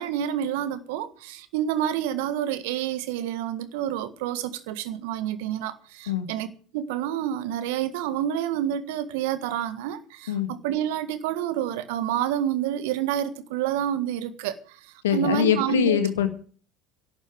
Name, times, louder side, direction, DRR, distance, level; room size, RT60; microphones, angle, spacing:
voice 1, 0.0-6.5 6.7-16.0, right 10 dB, 65° right, 1.6 m, -28 dB
voice 2, 15.0-16.3, left 9 dB, 75° left, 1.7 m, -23 dB
12.0 x 8.1 x 9.6 m
hypercardioid pair, 70°, 0 cm